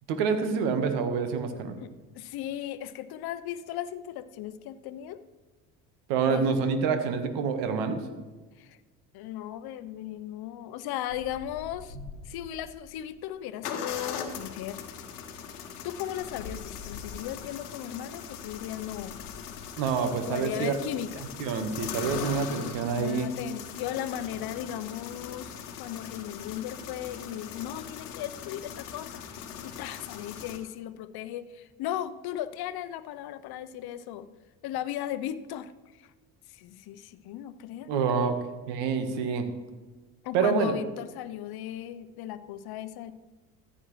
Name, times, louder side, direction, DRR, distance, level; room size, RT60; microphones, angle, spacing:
voice 1, 0.1-1.7 6.1-8.0 19.8-20.9 21.4-23.3 37.9-38.4 38.7-39.4 40.3-40.8, right 5 dB, 70° right, 8 dB, 1.5 m, -27 dB
voice 2, 1.8-5.2 6.2-6.6 8.6-8.8 9.1-12.0 12.2-14.8 15.8-19.5 20.3-21.3 22.9-34.3 34.6-35.7 36.0-36.1 36.5-38.4 40.2-43.1, left 11 dB, 55° left, 13 dB, 0.8 m, -37 dB
sound 1, 11.1-13.0 13.6-30.6, left 7 dB, 85° left, 1.1 m, -40 dB
14.5 x 8.9 x 3.2 m, 1.3 s
hypercardioid pair, 65°, 45 cm